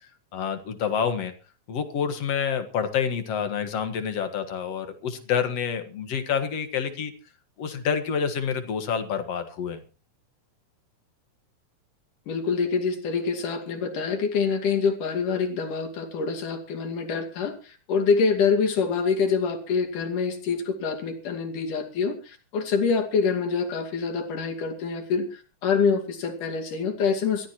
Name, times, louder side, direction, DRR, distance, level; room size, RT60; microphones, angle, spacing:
voice 1, 0.3-1.3 1.7-7.1 7.6-9.8, left 7 dB, 55° left, 8 dB, 2.5 m, -28 dB
voice 2, 12.3-27.5, left 5 dB, 90° left, 3 dB, 4.0 m, -26 dB
23.5 x 15.0 x 3.0 m, 0.34 s
omnidirectional pair, 3.5 m